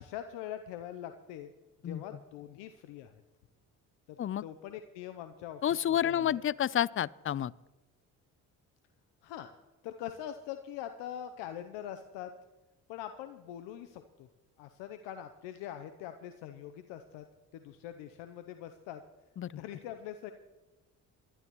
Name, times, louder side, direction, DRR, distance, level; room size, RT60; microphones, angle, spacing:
voice 1, 0.0-1.5 1.8-3.1 4.1-5.6 5.9-6.4 9.2-9.5 9.8-12.3 12.9-14.3 14.6-17.2 17.5-19.0 19.6-20.3, left 10 dB, 80° left, 9 dB, 0.9 m, -43 dB
voice 2, 5.6-7.5 19.4-19.5, left 10 dB, 30° left, 23 dB, 0.5 m, -30 dB
23.5 x 12.5 x 3.1 m, 1.2 s
hypercardioid pair, 55°, 43 cm